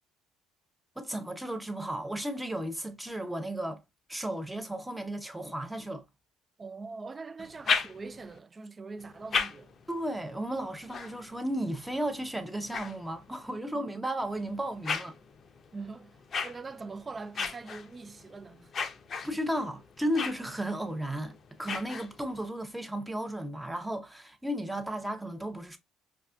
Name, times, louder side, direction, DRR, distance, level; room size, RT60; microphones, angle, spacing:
voice 1, 1.0-3.8 4.1-6.0 9.9-15.2 19.2-25.8, right 1 dB, 10° right, 0.7 m, -34 dB
voice 2, 6.6-9.7 15.7-18.7, right 4 dB, 30° right, 0.3 m, -43 dB
sound 1, 7.4-8.4 9.0-13.6 14.2-22.5, left 5 dB, 45° left, 0.5 m, -37 dB
4.8 x 2.3 x 2.2 m
hypercardioid pair, 60°, 0 cm